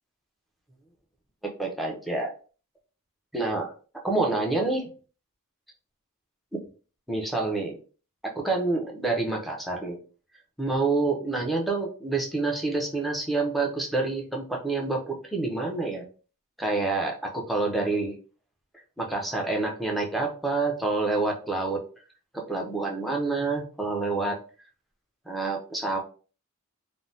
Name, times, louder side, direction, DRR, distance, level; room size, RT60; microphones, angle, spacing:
voice 1, 1.4-2.3 3.3-3.7 4.0-4.9 7.1-7.8 8.4-10.0 10.6-16.0 16.6-18.1 19.0-21.8 22.5-24.4 25.3-26.0, right 3 dB, ahead, -1 dB, 0.5 m, -27 dB
3.2 x 2.0 x 2.6 m, 0.38 s
head